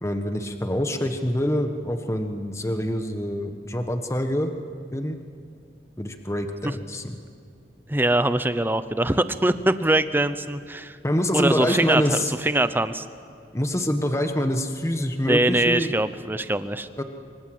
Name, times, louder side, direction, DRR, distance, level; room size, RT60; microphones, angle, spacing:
voice 1, 0.0-4.5 4.9-5.2 6.0-7.1 11.0-12.3 13.5-15.9 17.0-17.1, equal, 15° left, 6 dB, 1.3 m, -25 dB
voice 2, 7.9-11.0 11.3-13.0 15.3-16.9, right 1 dB, 10° right, 12 dB, 0.8 m, -23 dB
25.5 x 24.0 x 7.8 m, 2.4 s
head